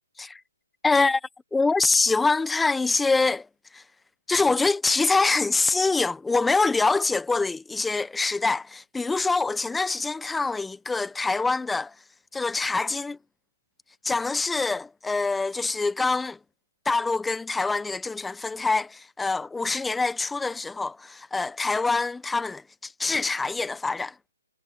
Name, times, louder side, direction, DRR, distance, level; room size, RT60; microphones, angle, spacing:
voice 1, 0.8-1.2 1.5-3.5 3.7-3.8 4.3-11.9 12.3-13.2 14.0-16.4 16.8-24.1, left 3 dB, 5° left, 1.3 m, -25 dB
figure-of-eight pair, 135°, 0 cm